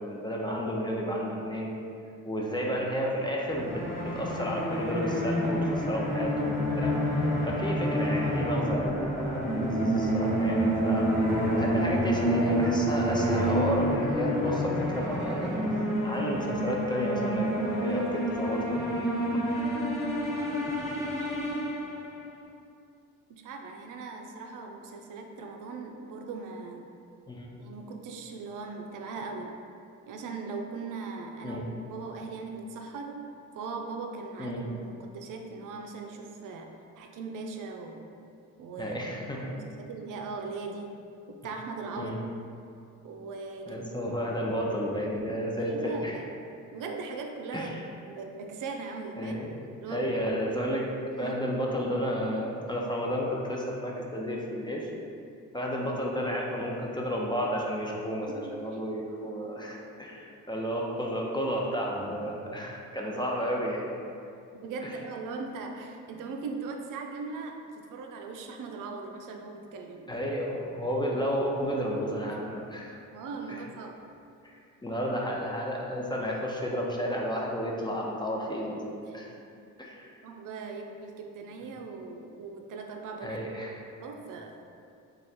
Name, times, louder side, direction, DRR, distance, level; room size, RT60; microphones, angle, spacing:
voice 1, 0.0-1.7 2.2-11.1 11.5-18.8 19.3-19.4 27.3-27.5 31.4-31.6 34.4-34.6 38.8-39.5 42.0-42.2 43.7-46.2 47.5-47.8 49.2-49.5 49.9-50.9 51.2-54.9 55.5-63.9 64.8-64.9 70.1-73.0 73.5-73.6 74.4-79.3 79.8-80.1 83.2-83.8, equal, 15° left, -2 dB, 0.6 m, -32 dB
sound 1, 3.5-22.2, equal, 10° right, 1.0 m, -28 dB
voice 2, 23.3-26.9 27.6-29.6 30.1-33.2 33.5-38.0 38.6-39.0 39.4-40.9 41.3-42.2 43.0-43.8 45.6-46.4 46.7-47.8 48.1-49.3 49.8-50.1 51.1-51.4 58.4-58.5 64.6-70.2 72.1-72.2 73.1-74.0 80.2-83.4 84.0-84.6, right 4 dB, 60° right, 3 dB, 0.5 m, -39 dB
3.1 x 2.5 x 4.1 m, 2.5 s
supercardioid pair, 55°, 35 cm